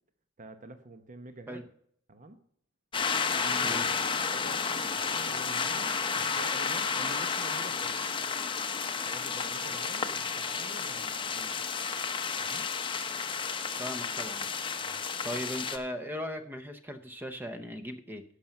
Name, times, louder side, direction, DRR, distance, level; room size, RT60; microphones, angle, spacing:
voice 1, 0.4-1.6 2.1-2.4 3.3-3.9 4.3-4.6 5.0-8.0 9.0-11.6 12.4-12.7 14.8-15.0, right 2 dB, 40° right, 9 dB, 0.9 m, -47 dB
sound 1, 2.9-15.8, left 5 dB, 25° left, 0.7 m, -32 dB
voice 2, 13.8-14.5 15.2-18.2, equal, 10° right, 9 dB, 0.8 m, -38 dB
11.5 x 5.9 x 6.5 m, 0.64 s
head